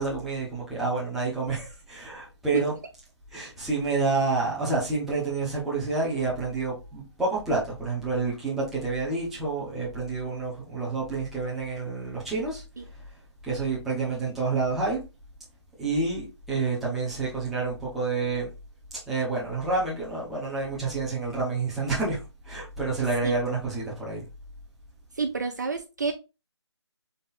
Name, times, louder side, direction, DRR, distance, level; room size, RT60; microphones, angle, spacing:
voice 1, 0.0-2.7 3.3-12.6 13.4-15.0 15.8-18.5 19.1-24.2, right 3 dB, ahead, 0.7 m, -28 dB
voice 2, 25.2-26.1, right 4 dB, 40° right, 0.5 m, -28 dB
4.1 x 3.2 x 4.0 m
figure-of-eight pair, 170°, 15 cm